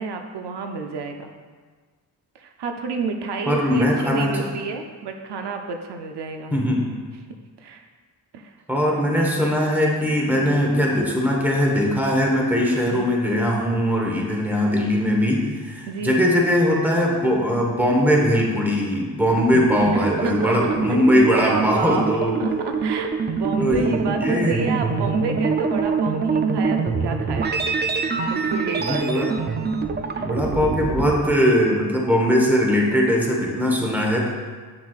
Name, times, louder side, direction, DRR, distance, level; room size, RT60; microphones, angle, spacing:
voice 1, 0.0-1.3 2.3-6.5 7.6-7.8 8.3-8.5 10.4-10.6 12.8-13.1 15.9-16.2 19.9-20.6 21.3-27.6 27.9-29.3 30.1-30.3, right 4 dB, 75° right, 4 dB, 0.6 m, -30 dB
voice 2, 3.5-4.5 6.5-6.8 8.7-22.4 23.6-24.5 28.8-29.3 30.2-34.3, equal, 5° right, -2 dB, 1.2 m, -20 dB
sound 1, 19.3-31.2, right 5 dB, 25° right, 0.4 m, -25 dB
7.8 x 7.0 x 2.4 m, 1.5 s
wide cardioid pair, 115°, 41 cm